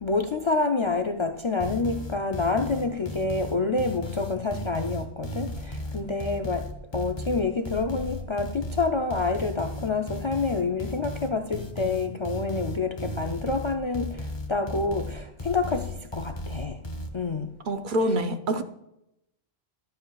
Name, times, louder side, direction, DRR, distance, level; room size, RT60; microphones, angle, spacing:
voice 1, 0.0-16.8 17.1-17.5, left 3 dB, 45° left, 0.4 m, -28 dB
sound 1, 1.6-17.1, left 1 dB, 30° left, 0.8 m, -35 dB
voice 2, 17.7-18.6, right 1 dB, 55° right, 0.8 m, -25 dB
11.5 x 7.7 x 2.3 m
omnidirectional pair, 1.1 m